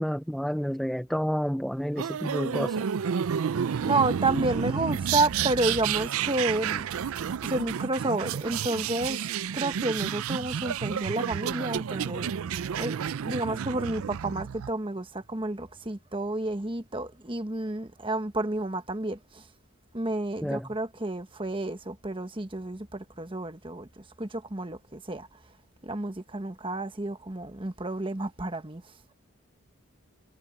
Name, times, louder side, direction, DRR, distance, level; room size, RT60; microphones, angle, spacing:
voice 1, 0.0-2.9 20.4-20.7, equal, ahead, 0.5 m, -30 dB
sound 1, 2.0-14.7, right 8 dB, 75° right, 0.4 m, -30 dB
voice 2, 3.8-6.9 7.4-9.3 9.5-12.3 12.8-19.4 19.9-25.3 25.8-28.8, right 2 dB, 25° right, 1.3 m, -30 dB
head